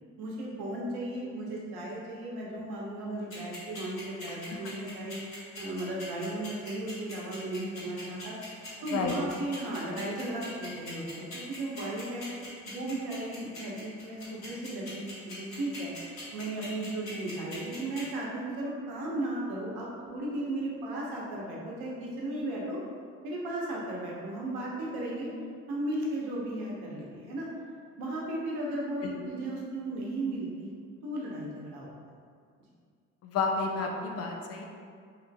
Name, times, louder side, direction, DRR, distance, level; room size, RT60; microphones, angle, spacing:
voice 1, 0.2-12.2 12.6-22.8 23.2-25.3 25.7-27.5 28.0-30.7 31.0-31.9, right 1 dB, 70° right, -4 dB, 0.8 m, -35 dB
sound 1, 3.3-18.0, left 1 dB, 65° left, 1.4 m, -43 dB
voice 2, 4.3-4.6 8.9-9.2 29.0-29.1 33.2-34.6, left 4 dB, 40° left, 1 dB, 0.5 m, -31 dB
3.0 x 2.5 x 2.2 m, 2.1 s
hypercardioid pair, 45°, 39 cm